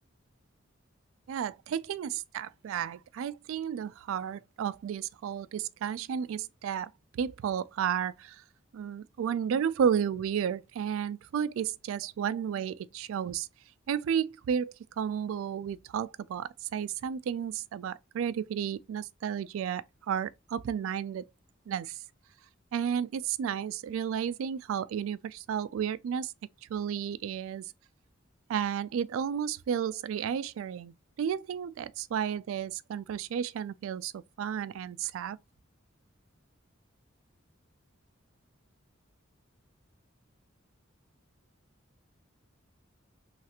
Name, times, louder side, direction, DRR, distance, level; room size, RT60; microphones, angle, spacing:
voice 1, 1.3-8.4 8.7-13.5 13.9-21.3 21.7-22.0 22.7-26.3 26.7-27.7 28.5-35.4, right 8 dB, 80° right, 0.3 m, -32 dB
3.2 x 2.4 x 2.8 m
head